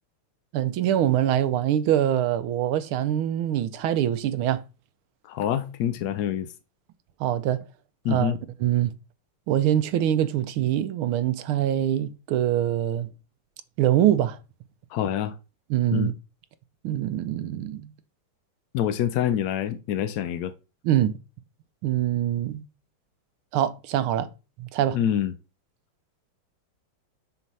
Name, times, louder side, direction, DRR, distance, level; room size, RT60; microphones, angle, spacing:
voice 1, 0.5-4.6 7.2-7.6 8.1-8.9 9.5-13.1 13.8-14.4 15.7-16.1 16.8-17.9 20.8-21.2 21.8-22.6 23.5-24.3 24.6-25.0, right 11 dB, 80° right, 1.5 m, -24 dB
voice 2, 5.2-6.5 8.0-8.4 14.9-15.3 15.9-16.1 18.7-20.5 24.9-25.3, left 10 dB, 75° left, 0.9 m, -26 dB
6.3 x 4.0 x 5.4 m
omnidirectional pair, 2.3 m